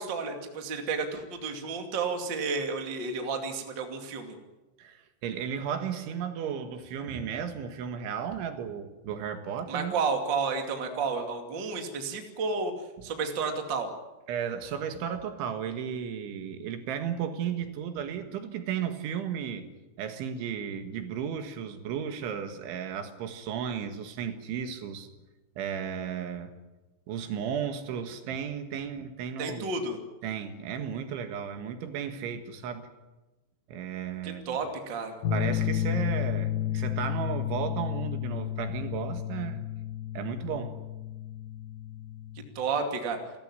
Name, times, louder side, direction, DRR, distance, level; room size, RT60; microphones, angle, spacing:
voice 1, 0.0-4.4 9.7-12.7 13.0-13.9 29.4-30.0 34.2-35.2 42.5-43.2, right 4 dB, 35° right, 4 dB, 2.2 m, -31 dB
voice 2, 4.8-9.9 14.3-19.7 20.0-25.1 25.6-26.6 27.1-29.7 30.2-32.9 33.7-34.6 35.3-39.6 40.2-40.8, right 8 dB, 75° right, 7 dB, 3.9 m, -34 dB
sound 1, 35.2-42.5, left 11 dB, 65° left, 4.0 m, -32 dB
30.0 x 15.0 x 9.8 m, 1.1 s
omnidirectional pair, 5.7 m